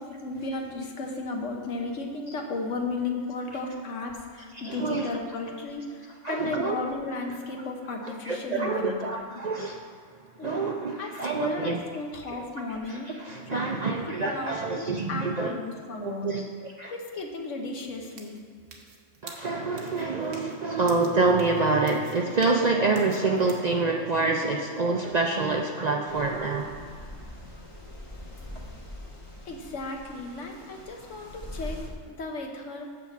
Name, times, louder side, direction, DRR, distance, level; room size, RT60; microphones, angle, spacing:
voice 1, 0.0-9.4 10.4-13.1 13.5-13.8 14.2-16.3 16.9-18.4 29.5-32.9, left 3 dB, 80° left, 2 dB, 1.3 m, -34 dB
voice 2, 4.5-5.1 6.2-6.8 8.0-9.8 10.4-11.8 12.3-12.4 12.9-15.5 16.0-16.9 19.2-26.7, right 3 dB, 50° right, 1 dB, 0.5 m, -27 dB
sound 1, 17.8-23.7, right 4 dB, 85° right, 1.3 m, -48 dB
sound 2, 26.1-31.9, left 1 dB, 25° left, 1.2 m, -42 dB
5.9 x 5.9 x 7.1 m, 2.1 s
omnidirectional pair, 1.3 m